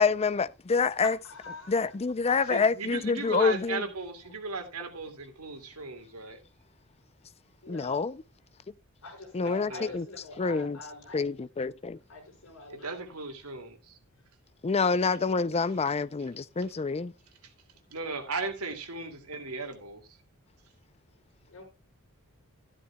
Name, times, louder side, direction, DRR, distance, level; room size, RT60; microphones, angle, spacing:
voice 1, 0.0-1.2 1.7-3.9 7.7-8.1 9.3-10.0 10.4-10.8 11.1-12.0 14.6-17.1, left 4 dB, 30° left, 0.4 m, -27 dB
voice 2, 1.0-1.9 7.6-8.1 9.0-11.3 12.1-13.0 19.1-19.2 21.5-21.6, left 2 dB, 65° left, 5.7 m, -45 dB
voice 3, 2.5-6.4 9.7-9.9 12.7-14.0 17.4-17.5 17.9-20.1, right 3 dB, 90° right, 2.4 m, -36 dB
13.5 x 12.5 x 2.3 m
head